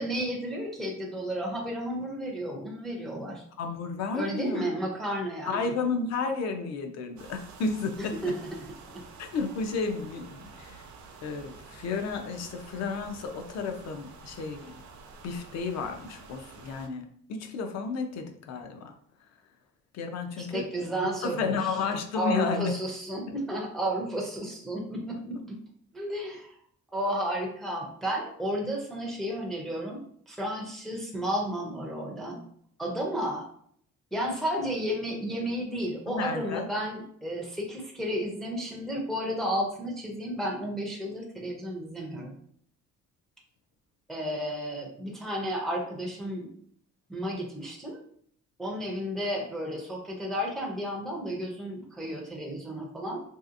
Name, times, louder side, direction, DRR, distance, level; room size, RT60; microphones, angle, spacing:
voice 1, 0.0-3.4 4.1-5.6 8.2-8.6 8.9-9.0 20.4-21.6 22.1-25.4 25.9-26.5 26.9-32.4 32.8-33.4 34.1-42.3 44.1-46.5 47.1-48.0 48.6-53.2, equal, ahead, -2 dB, 0.4 m, -32 dB
voice 2, 3.6-4.7 5.5-8.1 9.2-10.8 11.2-14.8 15.2-18.9 19.9-20.7 21.2-22.7 36.1-36.7, left 4 dB, 60° left, 5 dB, 0.5 m, -32 dB
sound 1, 7.2-16.9, right 4 dB, 70° right, 0.6 m, -49 dB
3.2 x 2.7 x 2.4 m, 0.64 s
cardioid pair, 180°, 30 cm